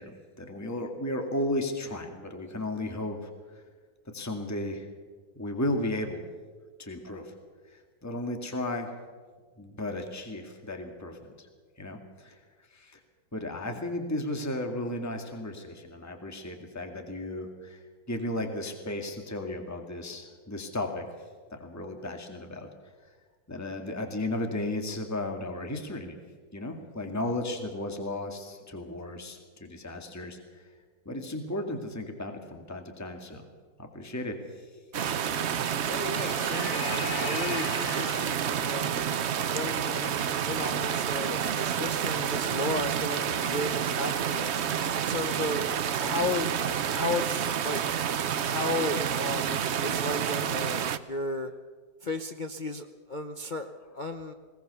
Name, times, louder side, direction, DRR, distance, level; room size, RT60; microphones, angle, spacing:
voice 1, 0.0-3.6 4.1-4.9 5.4-6.2 6.8-7.3 7.7-8.9 9.6-11.5 11.8-13.0 13.3-21.1 21.5-22.7 23.1-23.2 23.5-26.2 26.5-30.6 31.1-33.5 33.8-34.7, left 1 dB, 10° left, 4 dB, 1.9 m, -35 dB
sound 1, 34.9-51.0, right 8 dB, 60° right, 0.7 m, -29 dB
voice 2, 35.9-38.9 39.5-44.5 44.9-47.8 48.4-51.5 52.0-54.3, left 2 dB, 50° left, 4 dB, 0.5 m, -34 dB
sound 2, 36.1-38.4, left 4 dB, 85° left, 2.7 m, -37 dB
20.5 x 19.0 x 6.9 m, 1.6 s
omnidirectional pair, 2.1 m